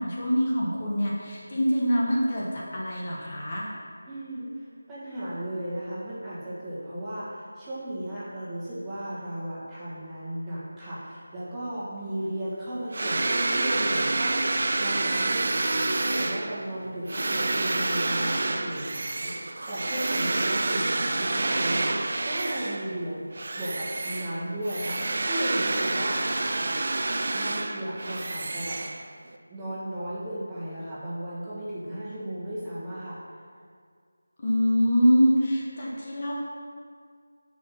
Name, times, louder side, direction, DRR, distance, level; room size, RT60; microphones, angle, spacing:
voice 1, 0.0-3.7 34.4-36.3, equal, 35° left, -5 dB, 1.4 m, -24 dB
voice 2, 4.1-15.5 15.9-23.2 23.6-26.2 27.3-28.8 29.5-33.2, right 1 dB, 10° right, -12 dB, 1.8 m, -35 dB
sound 1, 12.9-23.0 23.3-29.4, right 2 dB, 55° right, 0.5 m, -28 dB
6.7 x 5.1 x 5.8 m, 2.1 s
figure-of-eight pair, 165°, 0 cm